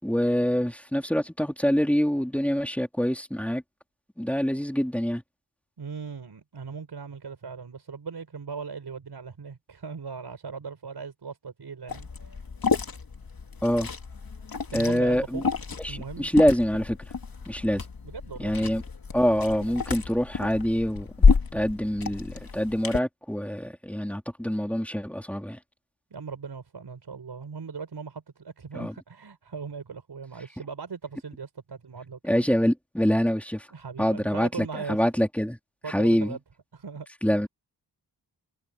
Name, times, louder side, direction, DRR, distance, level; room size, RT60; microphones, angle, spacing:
voice 1, 0.0-3.6 4.2-5.2 13.6-13.9 14.7-15.4 15.8-17.0 17.5-17.8 18.4-18.8 19.1-21.1 21.5-25.6 28.7-28.9 32.2-33.7 34.0-35.6 35.9-36.4 37.2-37.5, equal, 5° left, 3.5 m, -25 dB
voice 2, 5.8-12.4 14.4-15.4 15.9-16.3 18.0-18.5 26.1-32.5 33.7-35.0 35.8-36.4 36.7-37.1, right 5 dB, 75° right, 6.6 m, -39 dB
Liquid, 11.9-23.0, left 5 dB, 60° left, 2.3 m, -29 dB
wide cardioid pair, 95°, 41 cm